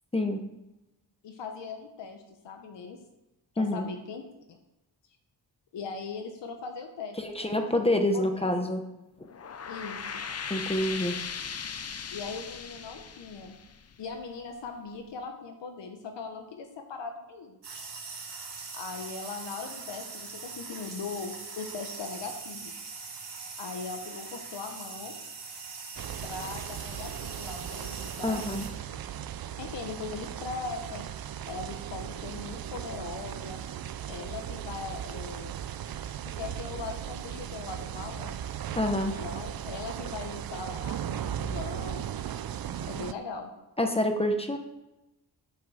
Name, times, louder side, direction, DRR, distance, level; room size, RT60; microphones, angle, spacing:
voice 1, 1.2-3.0 3.5-4.6 5.7-7.8 8.1-8.5 9.7-10.2 12.1-13.5 14.0-17.6 18.7-22.7 23.6-25.2 26.2-28.4 29.6-31.1 31.5-33.6 34.1-35.6 36.3-38.4 38.9-42.0 42.9-43.5, left 4 dB, 90° left, 4 dB, 1.2 m, -40 dB
voice 2, 7.2-8.8 10.5-11.2 28.2-28.7 38.7-39.1 43.8-44.6, left 1 dB, 15° left, 5 dB, 0.9 m, -27 dB
sound 1, 9.2-14.4, left 6 dB, 35° left, 0.6 m, -38 dB
sound 2, 17.6-28.7, right 4 dB, 75° right, 2.6 m, -42 dB
sound 3, 26.0-43.1, right 10 dB, 60° right, 0.5 m, -37 dB
8.7 x 6.1 x 6.4 m, 0.97 s
wide cardioid pair, 150°, 42 cm